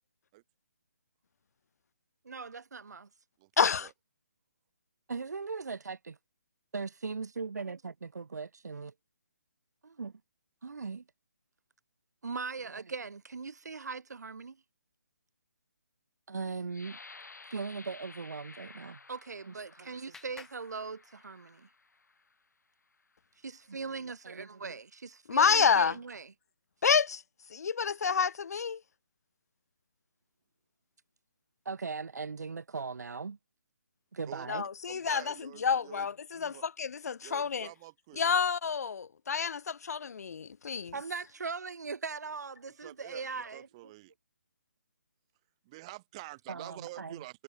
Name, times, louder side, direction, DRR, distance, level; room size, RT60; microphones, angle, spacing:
voice 1, 2.2-3.1 5.1-6.2 6.7-8.9 9.8-10.2 10.6-11.0 12.2-14.6 16.3-17.0 17.5-21.7 23.4-26.3 31.6-33.4 34.1-34.6 40.9-43.7 46.5-47.2, right 4 dB, 75° right, 1.6 m, -39 dB
voice 2, 3.6-3.9 25.3-26.0 26.8-27.2 27.5-28.8 34.5-37.7 38.2-40.9, left 6 dB, 65° left, 0.4 m, -28 dB
sound 1, 16.7-22.3 23.0-23.2 23.6-24.1, left 4 dB, 90° left, 3.0 m, -53 dB
Clapping, 19.0-21.6, left 5 dB, 5° left, 0.7 m, -57 dB
voice 3, 34.9-36.1 36.3-36.7 37.2-38.4 42.7-44.1 45.6-47.4, right 20 dB, 20° right, 1.3 m, -48 dB
hypercardioid pair, 165°, 9 cm